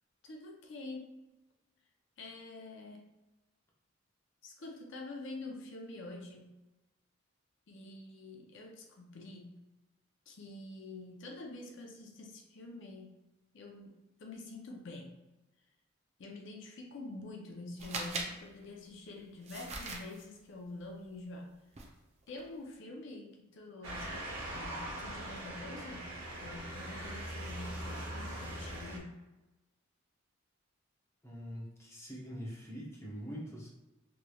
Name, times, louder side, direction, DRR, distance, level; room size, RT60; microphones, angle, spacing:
voice 1, 0.2-1.2 2.2-3.1 4.4-6.6 7.7-9.6 10.3-13.2 13.5-15.2 16.2-21.6 22.3-29.2, left 2 dB, 65° left, 2 dB, 0.5 m, -47 dB
sound 1, 17.8-18.3 19.5-20.2 21.8-21.9 22.3-22.5, right 3 dB, 35° right, 0.4 m, -40 dB
Motor vehicle (road) / Siren, 23.8-29.0, right 1 dB, 70° right, 1.1 m, -41 dB
voice 2, 31.2-33.7, equal, 15° left, -4 dB, 0.7 m, -43 dB
3.1 x 3.0 x 2.3 m, 1.0 s
head